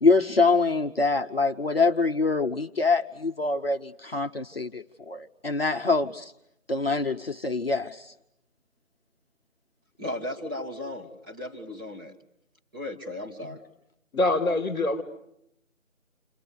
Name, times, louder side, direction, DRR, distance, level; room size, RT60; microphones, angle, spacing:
voice 1, 0.0-6.3 6.7-8.1 13.4-13.6, left 3 dB, 45° left, 4 dB, 0.9 m, -25 dB
voice 2, 10.0-12.1 12.7-13.6, left 1 dB, 15° right, -4 dB, 2.3 m, -36 dB
voice 3, 14.1-15.0, left 2 dB, 5° left, -12 dB, 1.8 m, -24 dB
29.5 x 26.5 x 7.0 m, 0.81 s
figure-of-eight pair, 165°, 41 cm